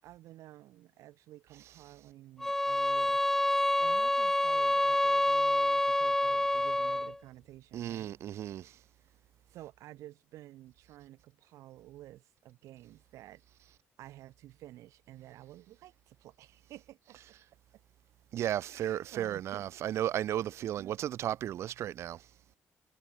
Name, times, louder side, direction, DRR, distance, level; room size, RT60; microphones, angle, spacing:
voice 1, 0.0-3.2 3.8-8.1 9.1-9.2 9.5-13.4 14.0-17.4 18.5-20.1 20.8-21.0, right 15 dB, 85° right, 6.3 m, -52 dB
sound 1, 2.4-7.2, left 1 dB, 5° left, 0.6 m, -27 dB
voice 2, 7.7-8.8 18.3-22.2, right 11 dB, 65° right, 0.4 m, -34 dB
cardioid pair, 100°, 5 cm